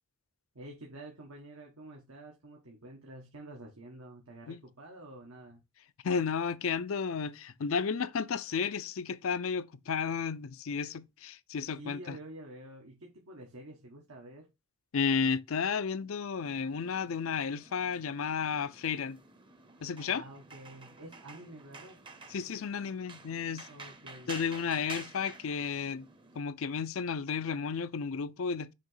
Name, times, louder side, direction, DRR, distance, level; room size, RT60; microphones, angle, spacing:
voice 1, 0.5-5.6 11.7-14.5 20.1-22.0 23.7-24.3, right 1 dB, 90° right, 1.5 m, -49 dB
voice 2, 6.0-12.2 14.9-19.2 19.8-20.2 22.3-23.7 24.3-26.1 26.4-28.7, left 6 dB, 70° left, 0.5 m, -33 dB
sound 1, 16.4-26.4, right 3 dB, 25° right, 0.7 m, -50 dB
6.5 x 3.0 x 5.5 m
head